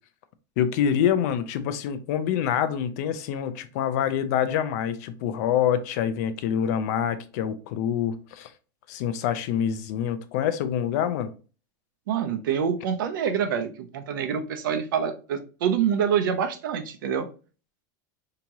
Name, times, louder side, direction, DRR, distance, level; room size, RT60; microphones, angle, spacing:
voice 1, 0.6-8.5 8.9-11.3, left 9 dB, 55° left, 0.5 m, -26 dB
voice 2, 12.1-17.3, right 7 dB, 90° right, 0.7 m, -26 dB
2.9 x 2.9 x 3.5 m
supercardioid pair, 165°, 11 cm